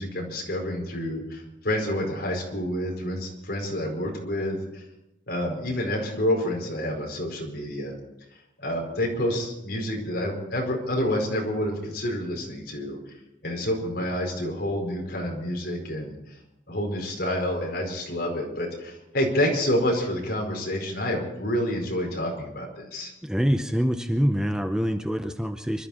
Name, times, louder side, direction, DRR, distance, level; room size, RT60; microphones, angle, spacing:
voice 1, 0.0-4.8 5.3-7.9 8.3-13.0 13.4-16.4 16.7-23.1, left 1 dB, 60° left, 0 dB, 4.9 m, -28 dB
voice 2, 23.2-25.9, equal, 5° right, 7 dB, 0.7 m, -25 dB
25.0 x 13.0 x 4.3 m, 0.88 s
head